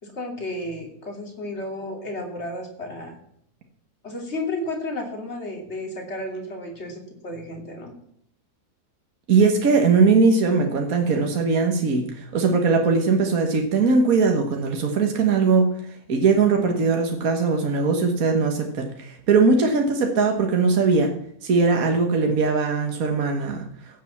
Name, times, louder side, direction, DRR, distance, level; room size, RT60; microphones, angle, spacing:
voice 1, 0.0-3.2 4.0-7.9, left 1 dB, 45° left, 2 dB, 3.0 m, -32 dB
voice 2, 9.3-15.7 16.1-21.1 21.4-23.6, right 4 dB, 65° right, 3 dB, 1.8 m, -20 dB
16.0 x 7.6 x 7.2 m, 0.70 s
omnidirectional pair, 1.7 m